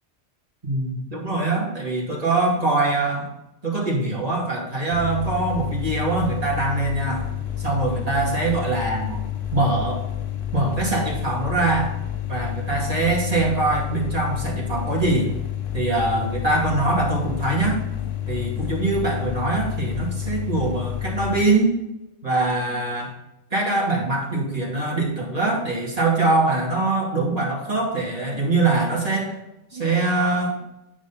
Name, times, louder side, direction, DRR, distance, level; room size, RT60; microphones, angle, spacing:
voice 1, 0.6-3.3 3.6-7.2 7.6-9.2 9.5-10.0 10.5-11.9 12.3-15.3 15.7-17.9 18.3-21.8 22.2-23.1 23.5-29.4 29.7-30.6, right 2 dB, 30° right, -3 dB, 2.5 m, -23 dB
sound 1, 4.9-21.4, left 11 dB, 85° left, 1.3 m, -29 dB
9.7 x 5.1 x 4.1 m, 0.94 s
omnidirectional pair, 1.3 m